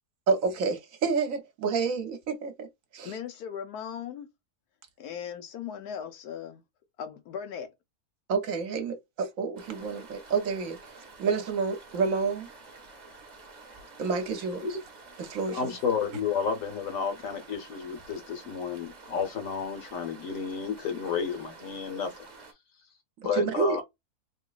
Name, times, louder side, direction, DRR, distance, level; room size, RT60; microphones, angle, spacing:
voice 1, 0.3-2.7 2.9-3.1 8.3-10.8 11.2-12.5 14.0-14.7 15.2-15.6 23.2-23.8, right 5 dB, 65° right, 1.1 m, -29 dB
voice 2, 3.0-4.3 5.0-6.6 7.0-7.7, left 8 dB, 90° left, 1.3 m, -38 dB
sound 1, 9.6-22.5, right 3 dB, 35° right, 0.9 m, -50 dB
voice 3, 15.5-22.1 23.2-23.8, left 6 dB, 65° left, 1.2 m, -31 dB
3.8 x 2.9 x 2.3 m
omnidirectional pair, 1.6 m